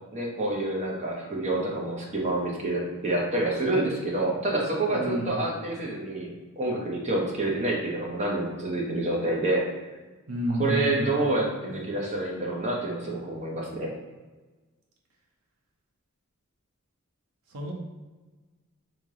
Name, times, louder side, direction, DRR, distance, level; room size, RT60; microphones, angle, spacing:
voice 1, 0.1-9.7 10.6-13.9, right 2 dB, 35° right, -2 dB, 0.8 m, -28 dB
voice 2, 4.9-5.4 10.3-11.1 11.7-11.8 17.5-17.7, equal, 75° right, -1 dB, 0.8 m, -30 dB
3.2 x 2.8 x 3.8 m, 1.2 s
head